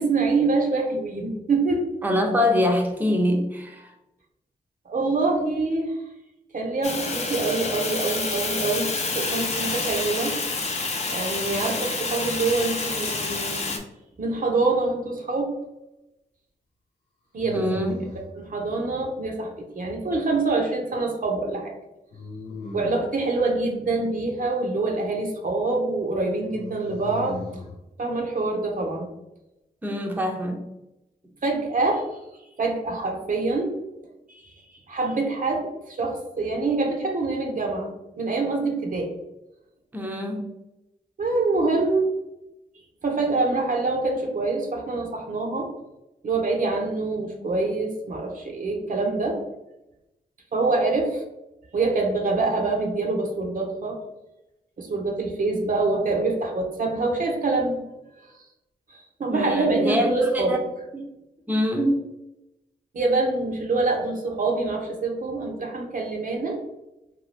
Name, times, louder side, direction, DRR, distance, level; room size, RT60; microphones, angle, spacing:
voice 1, 0.0-1.9 4.9-5.9 6.5-10.4 11.1-13.7 14.2-15.5 17.3-17.8 18.3-21.7 22.7-27.4 28.0-29.1 31.4-32.0 32.6-33.8 34.3-34.5 34.9-39.1 41.2-42.1 43.0-45.7 46.2-49.4 50.5-51.2 51.7-54.0 54.8-57.8 58.2-58.3 58.9-60.5 62.9-66.6, right 3 dB, 50° right, 1 dB, 0.7 m, -25 dB
voice 2, 2.0-3.9 17.5-18.0 29.8-30.6 39.9-40.5 59.3-60.6 60.9-61.0 61.5-62.0, left 1 dB, 10° right, 2 dB, 0.6 m, -24 dB
Fire, 6.8-13.8, left 3 dB, 40° left, 0.6 m, -28 dB
sound 1, 14.6-15.3 17.4-18.3 22.1-23.2 26.5-27.7, left 3 dB, 85° left, 0.8 m, -38 dB
2.6 x 2.3 x 3.2 m, 0.93 s
supercardioid pair, 45°, 17 cm